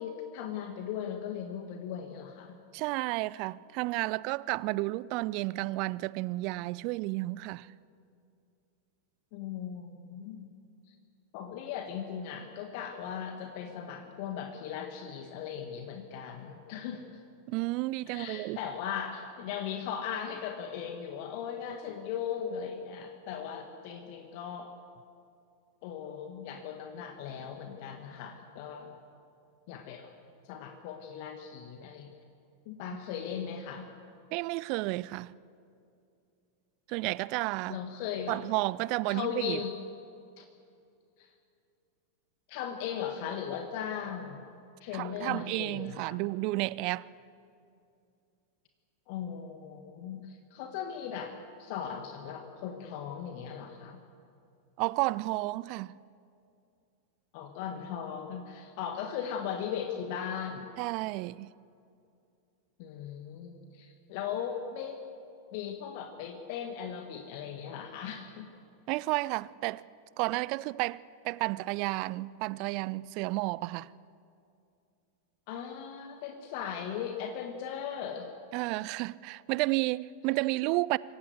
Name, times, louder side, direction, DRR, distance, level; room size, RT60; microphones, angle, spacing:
voice 1, 0.0-2.6 9.3-10.5 11.3-17.0 18.1-24.7 25.8-28.9 29.7-30.1 30.4-32.1 32.6-33.9 37.7-38.4 39.1-39.8 40.4-40.5 41.2-41.3 42.5-44.5 44.8-46.2 49.1-54.0 57.3-60.7 62.8-65.0 65.5-68.5 75.5-78.3, left 8 dB, 45° left, 1.6 m, -38 dB
voice 2, 2.7-7.7 17.5-18.6 34.3-35.3 36.9-37.8 38.3-39.6 44.9-47.1 54.8-55.9 60.8-61.5 68.9-69.8 70.2-73.9 78.5-81.0, right 21 dB, 45° right, 0.5 m, -32 dB
26.0 x 15.5 x 8.2 m
figure-of-eight pair, 90°, 0 cm